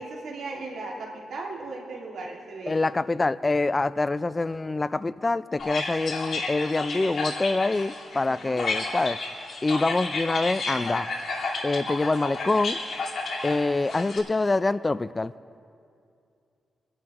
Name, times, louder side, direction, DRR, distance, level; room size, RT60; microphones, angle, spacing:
voice 1, 0.0-3.0 8.3-8.6, right 3 dB, 80° right, -1 dB, 2.0 m, -37 dB
voice 2, 2.7-9.2 9.6-11.1 11.6-12.8 13.4-15.3, left 3 dB, 25° left, 15 dB, 0.3 m, -25 dB
sound 1, 5.6-14.2, left 3 dB, 60° left, 2.3 m, -32 dB
26.5 x 11.0 x 2.9 m, 2.5 s
cardioid pair, 100°, 0 cm